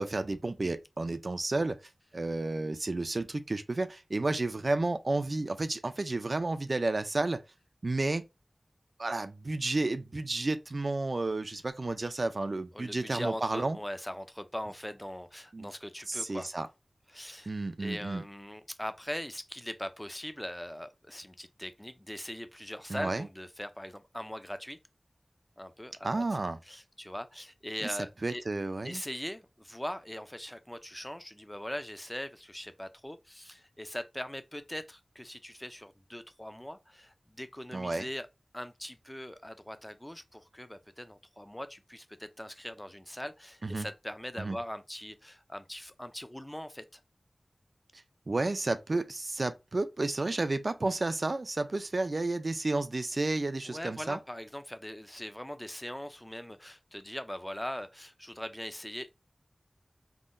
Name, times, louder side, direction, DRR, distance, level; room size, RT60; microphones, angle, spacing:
voice 1, 0.0-1.8 2.1-7.4 7.8-8.2 9.0-13.8 15.5-15.7 16.1-16.7 17.5-18.2 22.9-23.3 26.0-26.6 28.2-29.0 37.7-38.1 43.6-43.9 44.4-44.6 47.9-54.2, right 2 dB, 60° right, 0.3 m, -31 dB
voice 2, 12.7-16.5 17.1-17.5 17.8-24.8 25.6-26.2 26.7-28.4 28.8-38.3 38.5-47.0 53.7-59.1, left 1 dB, 15° left, 0.4 m, -41 dB
3.6 x 2.1 x 2.5 m
wide cardioid pair, 70°, 0 cm